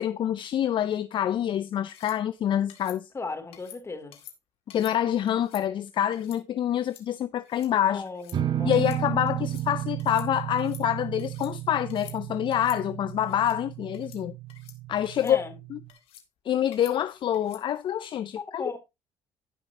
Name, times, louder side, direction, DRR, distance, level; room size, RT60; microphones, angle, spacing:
voice 1, 0.0-3.1 4.7-8.0 8.6-14.3 14.9-15.4 15.7-15.8 16.4-18.6, left 10 dB, 50° left, 0.5 m, -26 dB
Knife Sharpening, 1.9-2.2 2.7-3.0 3.5-3.8 4.1-4.4 4.7-5.0 5.3-5.6 6.1-6.4 6.8-7.0 7.4-7.7 8.1-8.4 8.7-9.0 9.3-9.7 10.0-10.3 10.6-11.5 11.9-12.2 12.5-12.8 13.2-13.6 13.9-14.2 14.5-14.8 15.0-15.3 15.9-16.3 16.7-16.9 17.3-17.6, left 11 dB, 70° left, 2.1 m, -49 dB
voice 2, 3.1-4.2 7.9-8.7 15.2-15.6 18.4-18.8, left 3 dB, 25° left, 3.0 m, -36 dB
sound 1, 8.3-15.9, right 12 dB, 50° right, 1.2 m, -33 dB
16.0 x 5.8 x 2.9 m
supercardioid pair, 70°, 10 cm